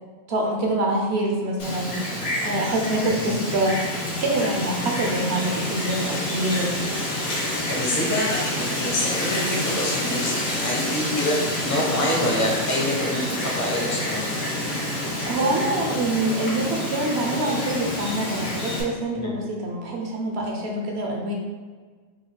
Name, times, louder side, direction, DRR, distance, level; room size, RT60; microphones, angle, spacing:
voice 1, 0.3-2.0 2.4-3.8 4.2-6.9 15.3-21.4, right 1 dB, 55° right, 0 dB, 1.0 m, -25 dB
Wind, 1.6-18.8, left 1 dB, 85° left, 1.8 m, -28 dB
voice 2, 3.1-3.5 7.7-11.4 11.6-14.3 19.1-19.3, left 1 dB, 20° left, -4 dB, 0.5 m, -26 dB
5.0 x 4.3 x 2.2 m, 1.5 s
omnidirectional pair, 1.4 m